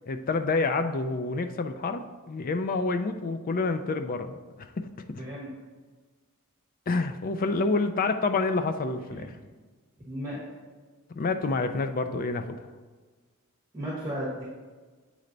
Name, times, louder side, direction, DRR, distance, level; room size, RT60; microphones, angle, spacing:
voice 1, 0.1-5.2 6.9-9.3 11.2-12.6, left 3 dB, 40° left, 8 dB, 0.4 m, -28 dB
voice 2, 5.2-5.5 9.1-9.3 10.0-10.4 13.7-14.4, equal, 15° right, -7 dB, 1.2 m, -34 dB
8.4 x 3.3 x 3.9 m, 1.4 s
head